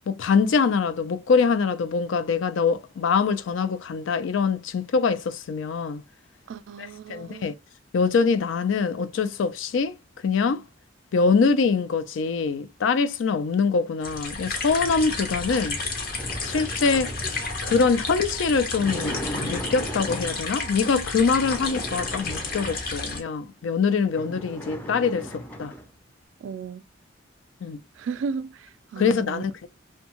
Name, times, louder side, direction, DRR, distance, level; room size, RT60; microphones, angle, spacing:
voice 1, 0.1-6.0 6.8-7.5 7.9-10.0 10.2-10.6 11.1-15.8 16.4-25.7 27.6-27.8 29.0-29.7, left 5 dB, 75° left, 0.4 m, -24 dB
voice 2, 6.5-7.5 23.9-24.0 26.4-26.8 28.0-29.4, right 5 dB, 75° right, 0.3 m, -35 dB
sound 1, 14.0-23.2, left 3 dB, 45° left, 0.7 m, -31 dB
sound 2, 15.8-20.6 21.2-23.3 23.7-23.8 24.0-25.9, equal, 10° left, 0.4 m, -38 dB
2.6 x 2.2 x 2.8 m
head